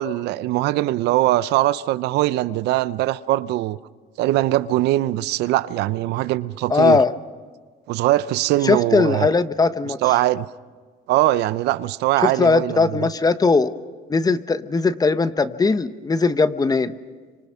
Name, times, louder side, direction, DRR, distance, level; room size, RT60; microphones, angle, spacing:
voice 1, 0.0-3.8 4.2-7.0 7.9-9.3 10.0-10.5 11.1-13.1, right 15 dB, 85° right, 0.7 m, -21 dB
voice 2, 6.7-7.1 8.6-10.0 12.2-13.7 14.1-16.9, left 4 dB, 20° left, 0.9 m, -19 dB
30.0 x 25.5 x 5.7 m
cardioid pair, 110°, 17 cm